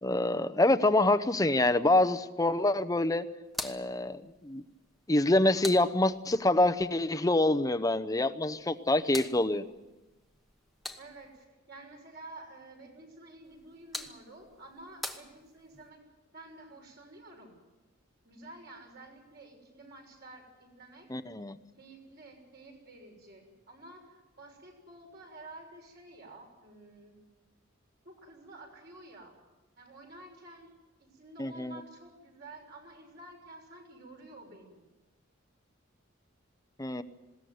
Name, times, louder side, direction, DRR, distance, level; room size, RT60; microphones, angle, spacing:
voice 1, 0.0-3.3 3.6-4.6 5.1-9.6 21.1-21.6 31.4-31.8 36.8-37.0, left 2 dB, 15° left, 12 dB, 0.8 m, -26 dB
sound 1, 3.4-6.5 8.5-11.5 13.4-15.9, left 1 dB, ahead, 1.2 m, -45 dB
voice 2, 11.0-16.0 16.3-17.6 18.2-21.1 21.7-27.2 28.0-29.3 29.8-30.7 31.1-34.8, right 2 dB, 50° right, 1 dB, 6.6 m, -51 dB
20.5 x 17.5 x 9.5 m, 1.1 s
head